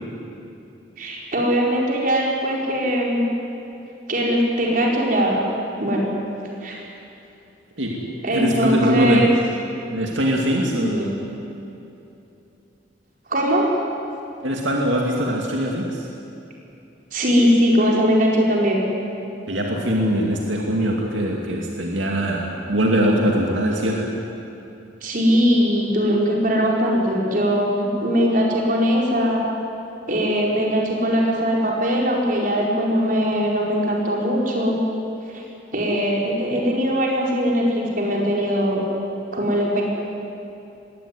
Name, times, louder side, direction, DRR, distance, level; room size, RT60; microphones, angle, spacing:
voice 1, 1.0-3.3 4.1-5.4 5.8-6.1 6.6-6.8 8.2-9.3 10.7-11.1 13.3-13.7 17.1-18.9 25.0-29.4 30.1-34.8 35.3-35.4 35.7-38.9 39.3-39.9, equal, 45° right, -2 dB, 4.7 m, -20 dB
voice 2, 7.8-9.3 9.9-11.1 14.4-16.1 19.5-24.2, equal, 80° right, 0 dB, 2.5 m, -22 dB
21.5 x 17.0 x 9.8 m, 2.8 s
head